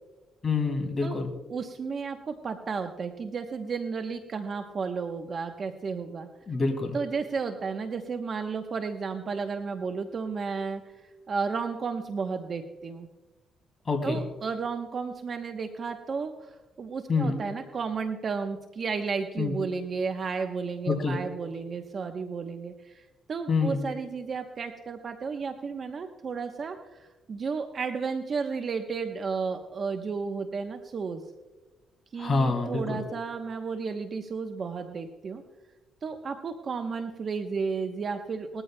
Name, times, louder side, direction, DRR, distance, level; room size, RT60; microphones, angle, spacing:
voice 1, 0.4-1.3 6.5-7.0 13.9-14.2 17.1-17.4 19.4-19.6 20.9-21.2 23.5-23.8 32.2-33.0, left 4 dB, 35° left, 3 dB, 2.5 m, -26 dB
voice 2, 1.5-6.3 6.9-10.8 11.3-13.1 14.0-31.2 32.1-35.4 36.0-38.6, right 5 dB, 45° right, 5 dB, 0.9 m, -33 dB
20.5 x 13.5 x 2.2 m, 1.2 s
cardioid pair, 90°, 0 cm